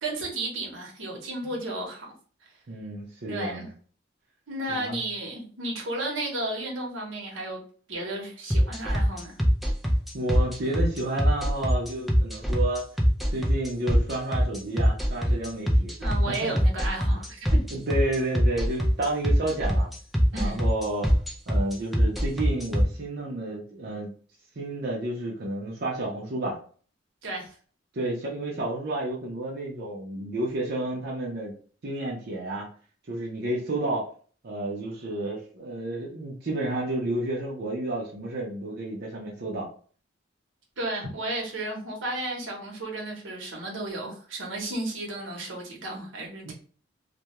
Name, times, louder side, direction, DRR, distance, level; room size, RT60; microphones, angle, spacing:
voice 1, 0.0-2.1 3.3-3.7 4.5-7.6 7.9-9.4 16.0-17.6 20.3-20.6 27.2-27.5 40.8-46.5, right 2 dB, 85° right, 0 dB, 0.8 m, -33 dB
voice 2, 2.7-3.7 4.7-5.0 10.1-12.9 13.3-15.9 16.3-16.5 17.7-19.9 20.3-21.2 21.5-24.1 24.6-26.6 27.9-31.5 31.8-32.7 33.1-34.1 34.4-39.7 46.5-46.6, right 1 dB, 55° right, -3 dB, 0.6 m, -31 dB
sound 1, 8.5-22.8, equal, ahead, 0.4 m, -22 dB
2.3 x 2.1 x 2.8 m, 0.43 s
head